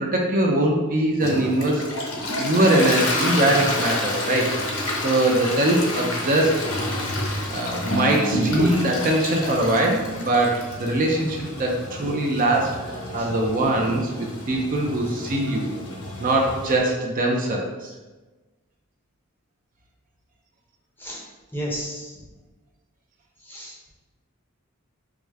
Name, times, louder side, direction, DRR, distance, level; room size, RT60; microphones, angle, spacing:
voice 1, 0.0-1.8 2.4-4.8 5.0-6.6 7.5-15.7 16.2-17.9, right 1 dB, 40° right, -1 dB, 0.5 m, -22 dB
Toilet flush, 1.2-16.8, left 1 dB, 75° left, 0.8 m, -29 dB
voice 2, 7.0-7.4 13.2-13.3 21.0-21.2 21.5-22.2 23.4-23.8, equal, 10° left, -3 dB, 0.6 m, -33 dB
4.8 x 2.1 x 3.4 m, 1.2 s
head